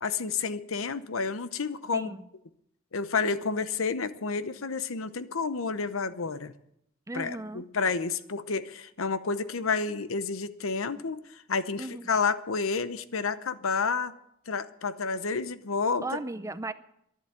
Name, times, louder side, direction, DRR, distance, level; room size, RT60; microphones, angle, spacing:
voice 1, 0.0-2.1 2.9-6.5 7.1-11.2 11.5-14.1 14.5-16.2, left 4 dB, 75° left, 13 dB, 0.8 m, -30 dB
voice 2, 1.9-2.3 7.1-7.6 11.8-12.1 16.0-16.7, right 2 dB, 15° right, 13 dB, 0.5 m, -36 dB
11.5 x 11.5 x 8.7 m, 0.77 s
head